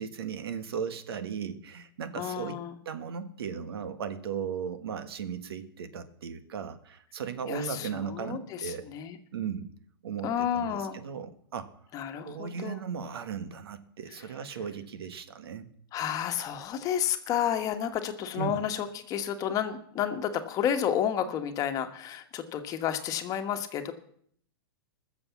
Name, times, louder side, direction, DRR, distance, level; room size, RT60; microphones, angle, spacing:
voice 1, 0.0-2.6 2.8-8.9 9.3-9.7 10.0-11.8 12.1-15.7 18.3-18.6, right 7 dB, 80° right, 11 dB, 1.6 m, -36 dB
voice 2, 2.2-2.7 7.5-9.2 10.2-11.0 11.9-12.8 15.9-23.9, left 9 dB, 30° left, 7 dB, 1.3 m, -31 dB
20.0 x 7.0 x 7.2 m, 0.65 s
hypercardioid pair, 145°, 13 cm